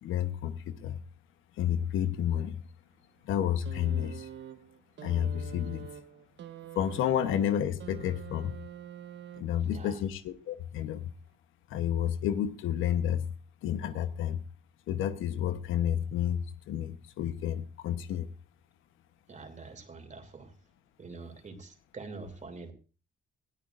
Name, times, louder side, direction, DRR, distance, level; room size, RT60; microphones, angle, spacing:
voice 1, 0.0-1.0 1.6-2.6 3.3-4.3 5.0-5.9 6.7-8.6 9.4-11.0 11.7-13.2 13.6-14.4 14.9-18.3, left 10 dB, 90° left, 1.1 m, -30 dB
sound 1, 3.6-9.8 10.9-11.0, right 9 dB, 70° right, 1.1 m, -46 dB
voice 2, 9.6-10.0 19.3-20.5 21.0-22.7, right 4 dB, 40° right, 3.0 m, -45 dB
20.5 x 13.5 x 2.6 m
cardioid pair, 90°, 20 cm